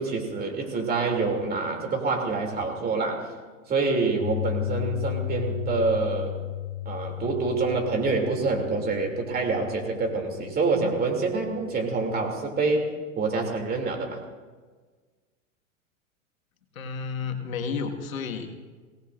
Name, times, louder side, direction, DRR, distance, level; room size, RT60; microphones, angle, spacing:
voice 1, 0.0-3.3 3.7-6.3 6.8-14.2, right 3 dB, 25° right, 2 dB, 2.7 m, -26 dB
Piano, 4.2-12.3, left 14 dB, 50° left, 1.3 m, -35 dB
voice 2, 16.7-18.5, left 5 dB, 85° left, 3 dB, 1.8 m, -31 dB
24.5 x 18.0 x 2.5 m, 1.4 s
hypercardioid pair, 120°, 40 cm